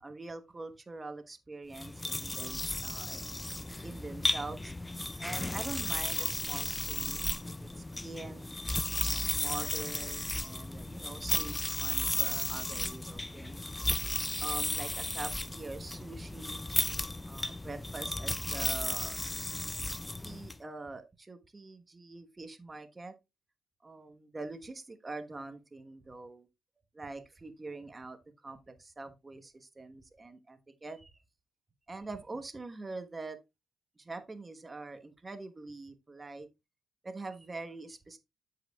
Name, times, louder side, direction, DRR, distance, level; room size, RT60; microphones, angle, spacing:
voice 1, 0.0-3.2 3.8-4.7 5.2-8.6 9.0-13.7 14.4-16.7 17.3-19.2 20.2-23.1 23.8-26.5 26.9-28.2 28.4-31.1 31.9-33.4 34.0-36.5 37.0-38.2, right 3 dB, 25° right, 1.2 m, -44 dB
sound 1, 1.7-20.6, left 2 dB, 15° left, 0.5 m, -34 dB
13.0 x 5.0 x 2.3 m
supercardioid pair, 60°, 0 cm